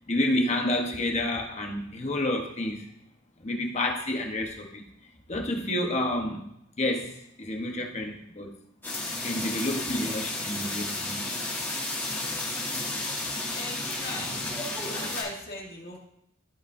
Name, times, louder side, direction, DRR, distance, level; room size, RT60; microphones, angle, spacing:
voice 1, 0.1-2.9 3.4-4.9 5.3-6.5 6.8-8.6 9.1-11.3, left 1 dB, 35° left, 2 dB, 1.1 m, -29 dB
sound 1, 8.8-15.2, left 2 dB, 10° left, 2.1 m, -32 dB
voice 2, 13.5-14.5 14.9-16.0, left 2 dB, 50° left, -3 dB, 2.3 m, -38 dB
14.5 x 5.1 x 2.6 m, 0.77 s
head